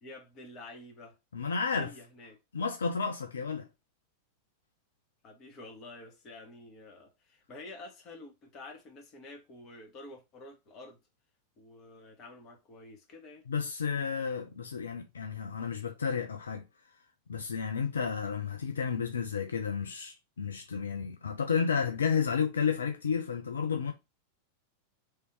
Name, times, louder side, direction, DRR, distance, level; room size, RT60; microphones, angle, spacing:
voice 1, 0.0-1.2 1.7-2.4 5.2-11.0 11.6-13.4, left 2 dB, 35° left, 1.2 m, -49 dB
voice 2, 1.3-1.9 2.5-3.7 13.5-16.6 17.3-23.9, left 6 dB, 70° left, 0.5 m, -32 dB
3.3 x 2.7 x 4.5 m
figure-of-eight pair, 90°, 0 cm